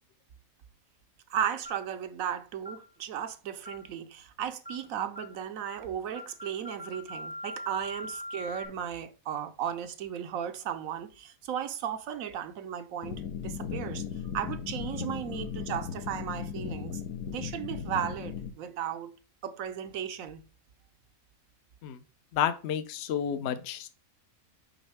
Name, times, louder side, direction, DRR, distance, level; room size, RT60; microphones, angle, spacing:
voice 1, 1.3-14.0 14.3-17.0 17.3-19.1 19.4-20.4, right 9 dB, 75° right, 1.1 m, -35 dB
sound 1, 1.6-1.9 2.6-2.9 3.6-3.9 4.6-4.9 5.1-5.4 5.6-5.9 6.1-8.6, left 1 dB, 10° left, 0.6 m, -41 dB
sound 2, 13.0-18.5, left 7 dB, 80° left, 1.2 m, -37 dB
voice 2, 22.3-23.9, left 9 dB, 60° left, 0.8 m, -30 dB
6.3 x 5.3 x 3.4 m
omnidirectional pair, 1.5 m